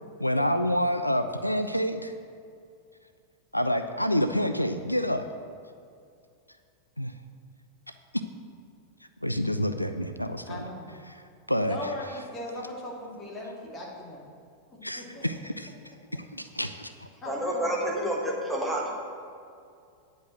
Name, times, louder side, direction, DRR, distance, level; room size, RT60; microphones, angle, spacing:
voice 1, 0.2-2.1 3.5-5.3 7.0-7.1 8.1-8.2 9.2-10.6 11.1-11.2 11.5-11.8 14.8-15.7 16.1-17.1, equal, 90° left, 9 dB, 0.3 m, -28 dB
voice 2, 10.5-11.0 11.6-14.2 14.7-15.2 17.2-18.4 18.8-18.9, left 1 dB, 25° left, -3 dB, 2.5 m, -39 dB
voice 3, 17.3-18.9, right 1 dB, ahead, -3 dB, 1.6 m, -29 dB
9.8 x 5.1 x 7.5 m, 2.4 s
figure-of-eight pair, 90°, 0 cm